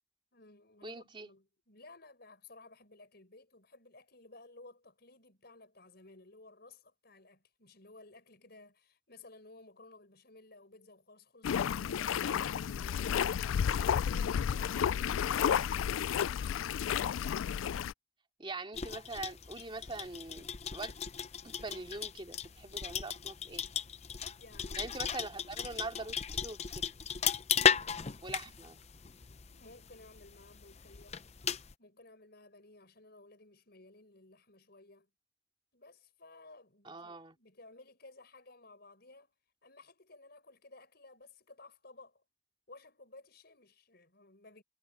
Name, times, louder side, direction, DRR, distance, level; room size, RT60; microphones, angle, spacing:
voice 1, 0.3-16.6 24.4-24.9 28.4-28.6 29.5-31.2 31.8-35.1 35.7-39.3 39.6-42.2 42.7-44.6, left 2 dB, 55° left, 6.2 m, -56 dB
voice 2, 0.8-1.3 18.4-20.9 21.4-23.6 24.8-26.9 28.2-28.8 36.8-37.4, right 3 dB, 25° right, 2.6 m, -43 dB
sound 1, 11.4-17.9, left 8 dB, 90° left, 0.3 m, -31 dB
sound 2, 18.7-31.7, left 7 dB, 35° left, 0.6 m, -36 dB
head